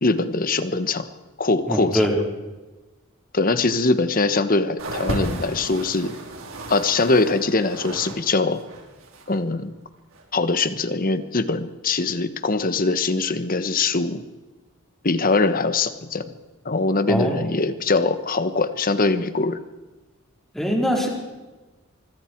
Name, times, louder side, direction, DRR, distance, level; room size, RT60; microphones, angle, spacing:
voice 1, 0.0-1.1 1.4-2.1 3.3-6.1 6.7-8.6 9.3-9.7 10.3-14.2 15.0-16.3 16.6-19.6, left 3 dB, 40° left, 11 dB, 1.3 m, -22 dB
voice 2, 1.7-2.2 17.1-17.4 20.5-21.1, equal, ahead, -1 dB, 4.5 m, -22 dB
sound 1, 4.8-8.2 8.5-9.4 10.1-10.2, right 1 dB, 80° right, 3.9 m, -33 dB
24.5 x 24.0 x 4.7 m, 1.2 s
head